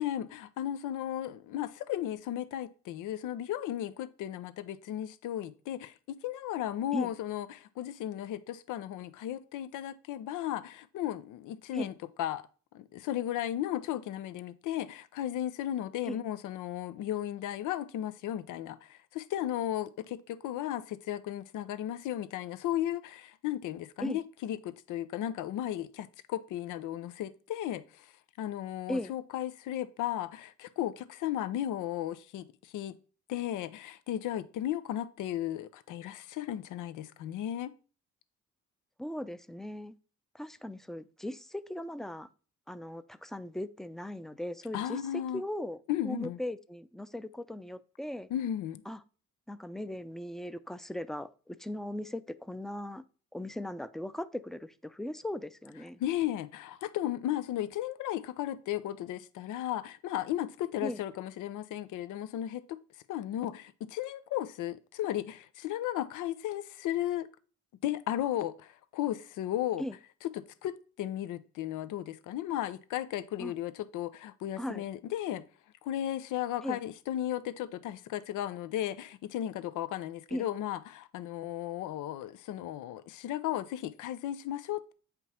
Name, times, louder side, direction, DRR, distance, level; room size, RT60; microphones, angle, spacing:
voice 1, 0.0-11.9 12.2-12.4 12.7-28.1 28.4-33.0 33.3-37.8 44.7-45.4 45.9-46.4 48.3-48.8 56.0-62.8 63.1-67.3 67.8-69.8 70.3-75.4 75.8-84.9, left 12 dB, 85° left, 0.7 m, -35 dB
voice 2, 39.0-40.0 40.3-42.3 42.7-48.3 48.9-49.0 49.5-53.0 53.3-56.0 60.8-61.0 69.8-70.0 73.4-73.5 74.6-74.9 76.6-76.8 80.3-80.5, left 1 dB, ahead, 0.5 m, -38 dB
8.3 x 5.3 x 4.3 m
cardioid pair, 90°, 30 cm